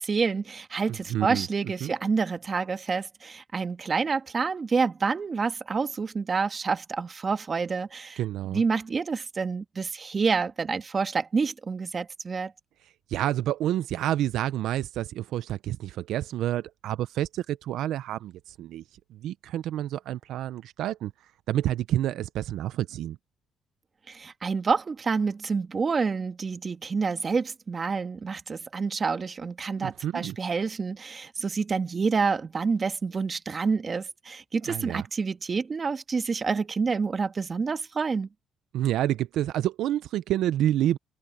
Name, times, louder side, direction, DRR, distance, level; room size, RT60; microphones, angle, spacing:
voice 1, 0.0-8.2 8.5-12.5 24.1-38.3, right 5 dB, 35° right, 1.7 m, -28 dB
voice 2, 0.9-1.5 1.8-1.9 8.2-8.6 13.1-18.8 19.1-23.2 29.8-30.4 34.7-35.0 38.7-41.0, right 12 dB, 85° right, 0.5 m, -29 dB
cardioid pair, 90°, 0 cm